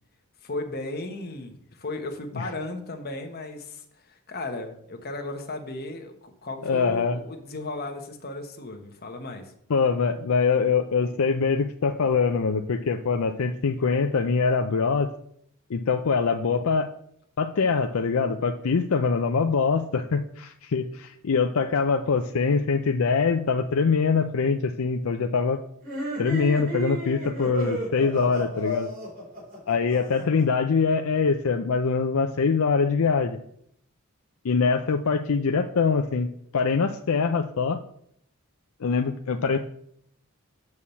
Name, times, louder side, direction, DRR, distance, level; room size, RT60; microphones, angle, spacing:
voice 1, 0.4-9.5, left 2 dB, 45° left, 4 dB, 1.2 m, -35 dB
voice 2, 6.6-7.2 9.7-15.1 15.7-16.9 17.4-25.6 26.2-28.9 29.7-33.4 34.4-36.3 36.5-37.8 38.8-39.6, left 5 dB, 70° left, 6 dB, 0.5 m, -23 dB
sound 1, 25.8-30.4, equal, 40° right, 3.7 m, -32 dB
7.0 x 4.8 x 7.0 m, 0.69 s
head